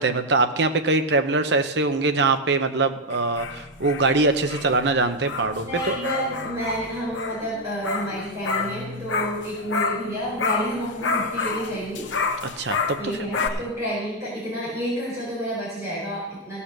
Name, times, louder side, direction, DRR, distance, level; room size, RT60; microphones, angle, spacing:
voice 1, 0.0-5.9 12.6-13.0, right 3 dB, 65° right, 8 dB, 0.8 m, -22 dB
sound 1, 3.1-10.1 10.4-13.5, left 4 dB, 80° left, 1.0 m, -29 dB
voice 2, 5.6-12.1 13.0-16.6, equal, 15° right, -8 dB, 4.4 m, -30 dB
16.0 x 5.6 x 6.7 m, 1.0 s
head